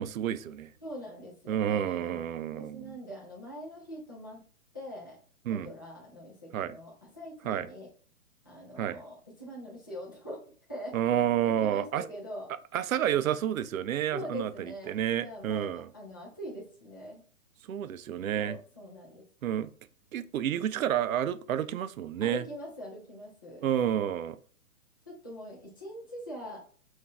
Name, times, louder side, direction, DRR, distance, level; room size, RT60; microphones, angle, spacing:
voice 1, 0.0-0.7 1.5-3.0 5.5-5.7 6.5-6.8 7.4-7.7 8.8-9.0 10.9-12.1 12.7-15.9 17.7-18.6 19.4-19.7 20.1-22.4 23.6-24.4, right 10 dB, 65° right, 0.5 m, -30 dB
voice 2, 0.8-2.2 2.5-4.4 4.7-5.2 5.5-7.9 8.4-10.4 10.7-10.9 11.4-12.5 14.1-17.2 18.4-19.2 22.2-23.6 25.1-26.6, equal, 15° left, 0.5 m, -43 dB
5.6 x 2.6 x 2.3 m
hypercardioid pair, 165°, 44 cm